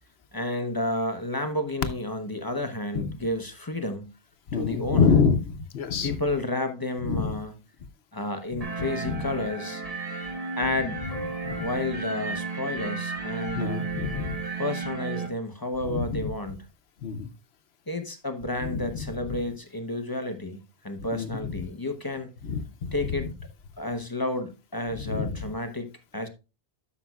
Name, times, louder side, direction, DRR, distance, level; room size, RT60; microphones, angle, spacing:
voice 1, 0.3-4.1 4.5-5.2 6.0-7.5 8.1-9.8 10.6-11.1 11.5-13.8 14.6-16.6 17.9-22.3 22.9-23.3 23.8-26.3, left 1 dB, 25° left, 0.8 m, -31 dB
voice 2, 4.5-6.2 7.0-7.3 8.8-9.2 11.4-11.7 13.5-14.4 15.8-16.3 17.0-17.3 18.6-18.8 21.1-21.5 22.4-23.2 25.0-25.5, left 5 dB, 80° left, 1.0 m, -27 dB
sound 1, 8.6-15.3, right 4 dB, 35° right, 1.3 m, -33 dB
12.0 x 6.1 x 2.3 m
omnidirectional pair, 1.1 m